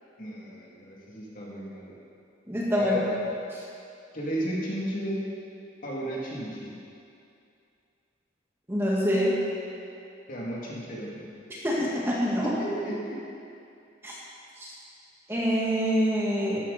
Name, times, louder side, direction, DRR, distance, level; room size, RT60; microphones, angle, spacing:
voice 1, 0.2-1.9 2.7-3.1 4.1-5.2 5.8-6.7 10.3-11.3 12.4-13.2 14.1-14.2, right 1 dB, 50° left, -5 dB, 2.8 m, -34 dB
voice 2, 2.5-3.0 8.7-9.4 11.5-12.5 14.0-14.1 14.6-14.7 15.3-16.6, equal, 15° right, -5 dB, 1.8 m, -25 dB
13.5 x 12.0 x 4.3 m, 2.6 s
head